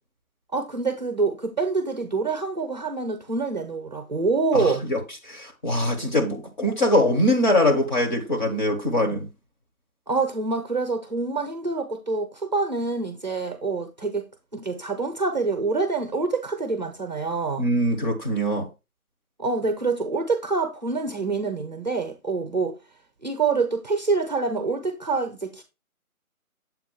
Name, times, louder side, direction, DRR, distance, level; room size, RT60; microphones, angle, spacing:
voice 1, 0.5-4.8 10.1-14.3 14.5-17.7 19.4-22.8 23.2-25.6, right 4 dB, 30° right, 0.7 m, -26 dB
voice 2, 4.5-5.0 5.2-9.3 17.6-18.7, left 1 dB, 35° left, 1.3 m, -22 dB
7.5 x 2.5 x 5.3 m
figure-of-eight pair, 165°, 43 cm